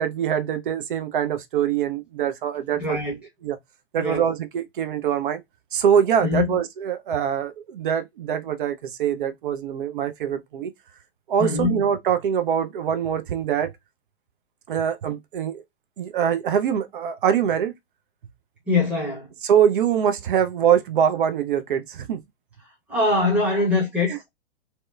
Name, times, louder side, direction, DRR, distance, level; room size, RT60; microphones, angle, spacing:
voice 1, 0.0-3.0 3.4-3.6 3.9-5.4 5.7-10.7 11.3-13.7 14.7-15.6 16.0-17.7 19.4-22.2 24.1-24.2, right 8 dB, 50° right, 0.5 m, -23 dB
voice 2, 2.7-3.2 4.0-4.2 6.2-6.5 11.4-11.8 18.7-19.3 22.9-24.3, left 3 dB, 5° right, 0.8 m, -23 dB
2.8 x 2.1 x 2.2 m
figure-of-eight pair, 115°, 34 cm